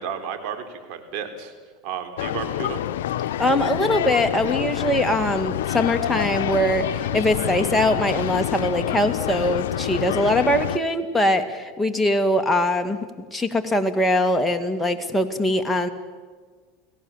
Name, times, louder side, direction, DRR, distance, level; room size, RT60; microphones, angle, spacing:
voice 1, 0.0-1.5 1.8-2.8 9.7-10.3, right 7 dB, 60° right, 6 dB, 3.8 m, -33 dB
sound 1, 2.2-10.8, left 12 dB, 85° left, 0.7 m, -27 dB
voice 2, 3.4-13.1 13.3-15.9, left 1 dB, 5° left, 4 dB, 2.1 m, -22 dB
29.5 x 17.5 x 7.4 m, 1.5 s
supercardioid pair, 110°, 0 cm